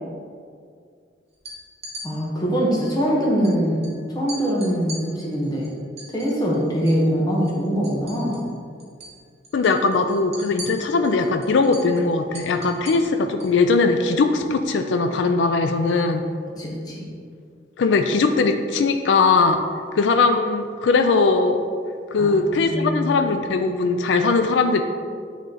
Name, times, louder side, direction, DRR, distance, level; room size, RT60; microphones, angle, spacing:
sound 1, 1.3-2.1 3.4-3.5 3.8-3.9 4.3-7.1 7.3-8.5 8.8-9.1 9.4-13.6, right 1 dB, 35° right, 1.1 m, -39 dB
voice 1, 2.0-3.8 4.1-5.7 6.1-8.4 16.6-17.1 22.2-23.2, equal, 20° left, -3 dB, 1.1 m, -23 dB
voice 2, 9.5-16.3 17.8-19.6 19.9-21.6 22.1-24.8, left 4 dB, 70° left, 6 dB, 0.4 m, -20 dB
8.9 x 3.1 x 4.0 m, 2.2 s
head